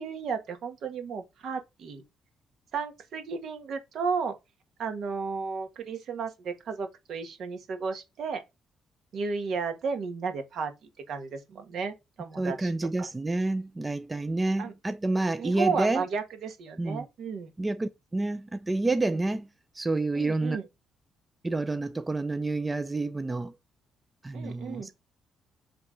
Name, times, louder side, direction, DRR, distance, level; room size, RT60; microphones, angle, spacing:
voice 1, 0.0-2.0 2.7-4.3 4.8-8.4 9.1-10.7 11.1-12.7 14.6-14.7 15.4-17.5 20.1-20.6 24.3-24.9, right 5 dB, 70° right, 1.6 m, -33 dB
voice 2, 12.4-16.1 16.8-17.1 17.6-19.5 19.7-20.6 21.4-23.6 24.2-24.9, right 2 dB, 20° right, 0.5 m, -29 dB
7.8 x 3.4 x 3.8 m
cardioid pair, 90°, 0 cm